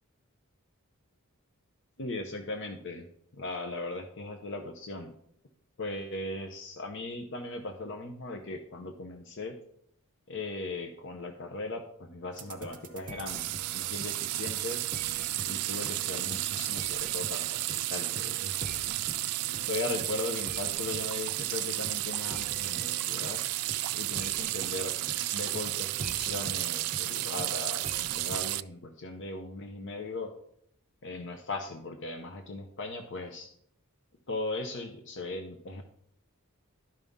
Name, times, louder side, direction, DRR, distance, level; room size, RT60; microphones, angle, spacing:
voice 1, 2.0-3.0 3.3-5.1 5.8-9.6 10.3-14.8 15.4-18.7 19.4-23.4 23.9-24.9 25.3-30.3 31.0-33.5 34.3-35.8, left 2 dB, 55° left, 5 dB, 0.8 m, -38 dB
sound 1, 12.3-28.5, right 4 dB, 40° right, 0.8 m, -44 dB
sound 2, 13.3-28.6, right 17 dB, 90° right, 0.3 m, -33 dB
12.0 x 5.4 x 3.6 m, 0.67 s
head